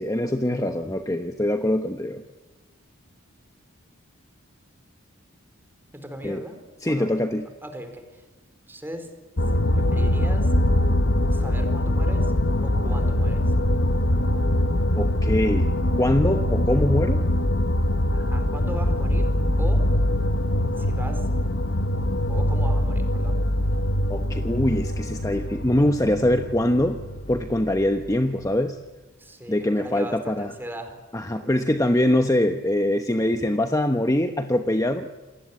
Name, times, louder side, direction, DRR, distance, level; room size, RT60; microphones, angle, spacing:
voice 1, 0.0-2.2 6.2-6.4 6.8-7.5 15.0-17.2 24.1-27.0 27.3-28.8 29.5-30.5 31.1-35.1, left 1 dB, 15° left, 6 dB, 1.0 m, -23 dB
voice 2, 5.9-6.6 6.9-7.1 7.6-8.2 8.7-9.1 9.7-10.5 11.3-12.3 12.6-13.4 18.1-19.3 19.6-19.8 20.8-21.2 22.3-23.4 29.2-31.0 31.3-31.5, right 1 dB, 10° right, 7 dB, 4.5 m, -38 dB
sound 1, 9.4-28.1, left 1 dB, 60° left, 1.3 m, -23 dB
28.0 x 19.5 x 9.6 m, 1.2 s
head